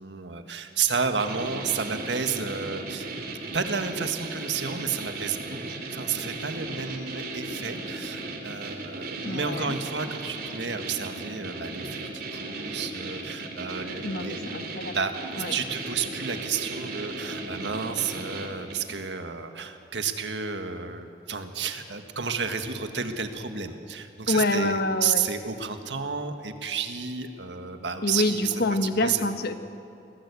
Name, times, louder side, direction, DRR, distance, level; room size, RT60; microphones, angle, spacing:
voice 1, 0.0-3.1 3.5-14.5 14.8-29.2, right 6 dB, 80° right, 7 dB, 1.7 m, -31 dB
sound 1, 1.2-18.9, right 2 dB, 55° right, 3.1 m, -36 dB
voice 2, 9.2-9.8 14.0-15.0 15.4-15.5 24.3-25.2 28.0-29.6, left 2 dB, 60° left, 9 dB, 1.2 m, -26 dB
22.5 x 18.0 x 8.3 m, 2.9 s
head